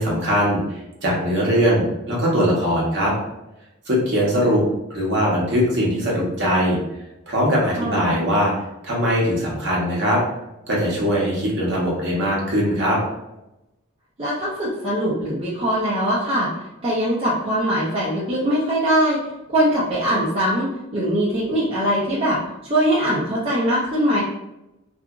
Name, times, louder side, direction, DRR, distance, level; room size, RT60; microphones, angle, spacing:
voice 1, 0.0-3.1 3.9-4.6 4.9-6.8 7.3-8.5 8.8-10.2 10.7-13.0, equal, 50° right, -4 dB, 0.9 m, -21 dB
voice 2, 7.8-8.1 14.2-16.5 16.8-19.2 19.5-24.2, equal, 25° right, -8 dB, 0.4 m, -21 dB
2.8 x 2.4 x 2.3 m, 0.93 s
head